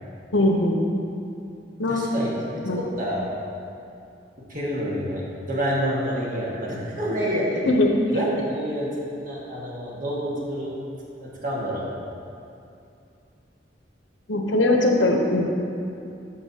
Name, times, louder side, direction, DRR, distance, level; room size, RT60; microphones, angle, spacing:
voice 1, 0.3-0.8 1.8-2.0 2.6-2.8 7.7-7.9 14.3-15.4, left 2 dB, 85° left, 1 dB, 0.9 m, -20 dB
voice 2, 1.9-3.3 4.5-7.6 8.1-10.7 11.2-11.9, equal, 45° right, -5 dB, 1.6 m, -28 dB
12.5 x 5.5 x 2.8 m, 2.6 s
head